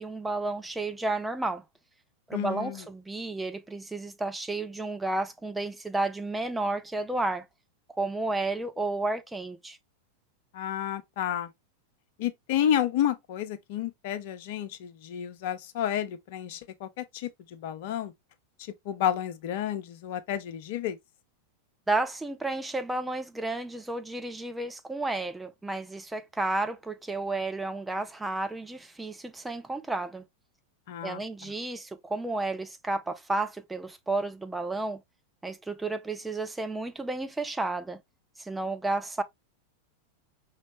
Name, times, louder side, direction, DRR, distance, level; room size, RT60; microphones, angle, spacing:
voice 1, 0.0-1.6 2.3-7.4 8.0-9.8 21.9-30.2 31.0-35.0 35.4-38.0 38.4-39.2, right 2 dB, 5° right, 0.5 m, -32 dB
voice 2, 2.3-2.8 10.5-11.5 12.2-18.1 18.6-21.0 30.9-31.2, left 10 dB, 50° left, 0.6 m, -31 dB
5.3 x 3.2 x 2.9 m
figure-of-eight pair, 90°, 0 cm